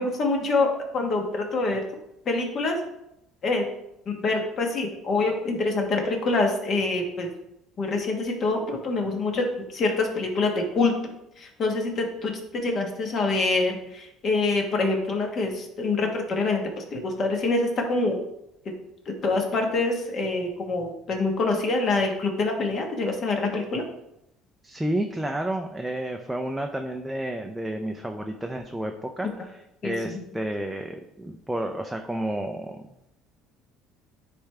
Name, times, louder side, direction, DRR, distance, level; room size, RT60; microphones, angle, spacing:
voice 1, 0.0-1.8 2.3-2.8 3.4-3.6 4.1-7.3 7.8-9.4 9.7-10.9 11.4-18.2 19.2-23.8 29.8-30.2, left 3 dB, 40° left, 2 dB, 1.2 m, -25 dB
voice 2, 24.6-32.8, right 1 dB, 5° right, 3 dB, 0.4 m, -31 dB
9.8 x 3.5 x 3.3 m, 0.84 s
cardioid pair, 135°, 0 cm